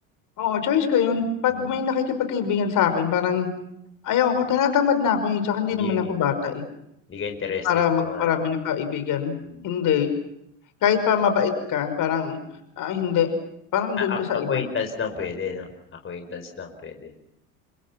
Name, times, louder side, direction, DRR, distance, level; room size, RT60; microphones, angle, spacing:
voice 1, 0.4-3.5 4.0-6.6 7.6-9.4 9.6-10.1 10.8-12.4 12.8-13.3 13.7-14.6, left 8 dB, 50° left, 8 dB, 5.5 m, -23 dB
voice 2, 1.1-1.8 5.7-6.3 7.1-8.4 9.4-9.6 14.0-15.7 16.0-17.1, left 6 dB, 30° left, 4 dB, 4.9 m, -32 dB
30.0 x 26.0 x 6.0 m, 0.80 s
hypercardioid pair, 80°, 40 cm